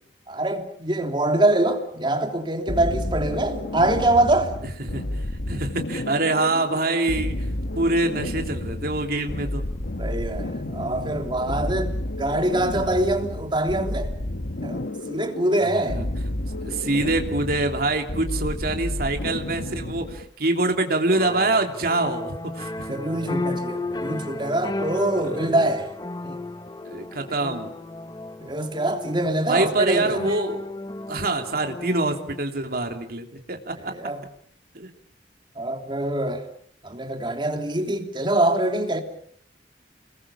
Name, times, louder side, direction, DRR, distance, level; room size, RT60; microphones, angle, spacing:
voice 1, 0.3-4.5 10.0-11.9 12.2-14.1 14.6-16.0 22.9-25.9 26.2-26.4 28.4-30.2 33.7-34.2 35.5-36.5 36.8-39.0, right 1 dB, 30° right, 3.3 m, -24 dB
sound 1, 2.7-20.3, left 1 dB, 65° left, 1.3 m, -31 dB
voice 2, 5.5-7.5 7.7-9.6 15.6-15.7 16.0-16.1 16.6-22.9 26.8-27.7 29.5-30.7 31.1-33.9 34.7-34.9, right 2 dB, 60° right, 3.2 m, -25 dB
sound 2, 21.1-32.4, left 2 dB, 25° left, 1.0 m, -34 dB
30.0 x 21.5 x 7.2 m
head